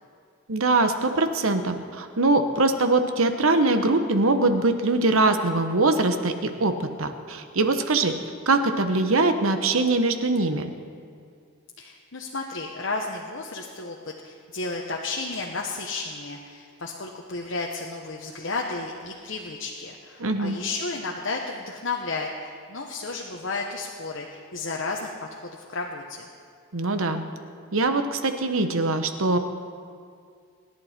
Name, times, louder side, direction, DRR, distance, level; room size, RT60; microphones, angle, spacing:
voice 1, 0.5-8.1 8.5-10.7 20.2-20.6 26.7-27.2 27.7-29.4, right 2 dB, 70° right, 8 dB, 1.1 m, -22 dB
voice 2, 11.8-26.3, left 3 dB, 60° left, 0 dB, 1.1 m, -33 dB
25.5 x 11.0 x 4.4 m, 2.3 s
head